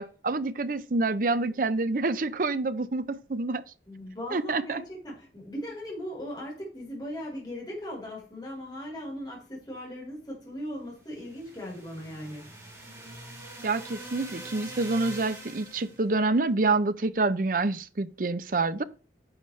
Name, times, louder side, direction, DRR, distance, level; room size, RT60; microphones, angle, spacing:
voice 1, 0.0-3.6 4.3-4.8 13.6-18.8, right 3 dB, 50° right, 0.6 m, -27 dB
voice 2, 3.9-12.5, equal, 20° left, 4.3 m, -38 dB
sound 1, 11.1-16.0, right 1 dB, 15° right, 4.2 m, -44 dB
11.0 x 6.9 x 3.2 m
head